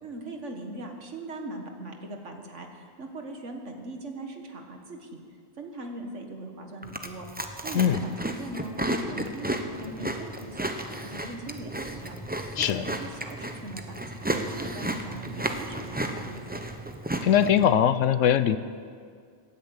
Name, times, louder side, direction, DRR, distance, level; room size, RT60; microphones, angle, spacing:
voice 1, 0.0-5.2 5.6-12.1 12.6-16.6, right 2 dB, 60° right, 3 dB, 1.9 m, -40 dB
Chewing mastication, 6.8-17.6, right 1 dB, 10° right, 0.7 m, -33 dB
voice 2, 17.2-18.6, left 9 dB, 70° left, 13 dB, 0.9 m, -21 dB
17.0 x 10.5 x 8.0 m, 2.1 s
omnidirectional pair, 1.4 m